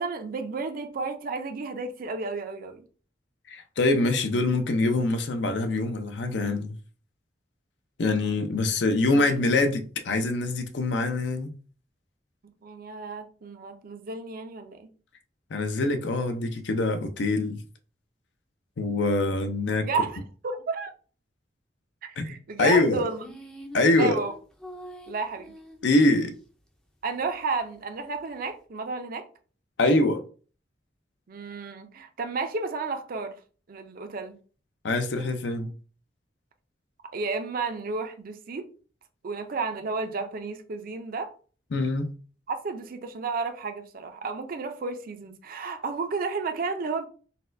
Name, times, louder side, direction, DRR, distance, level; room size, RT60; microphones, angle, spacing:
voice 1, 0.0-2.8 9.0-9.4 12.6-14.9 19.8-20.9 22.0-23.2 23.9-24.3 25.1-25.5 27.0-29.3 31.3-33.4 33.7-34.4 37.1-38.7 39.2-41.3 42.5-47.1, right 4 dB, 50° right, 0.5 m, -32 dB
voice 2, 3.5-6.8 8.0-11.5 15.5-17.6 18.8-19.9 22.2-22.3 22.6-23.0 23.7-24.2 25.8-26.3 29.8-30.2 34.8-35.7 41.7-42.1, left 2 dB, 70° left, 0.5 m, -24 dB
sound 1, 23.1-26.3, equal, 5° left, 0.4 m, -44 dB
4.1 x 2.2 x 2.5 m
head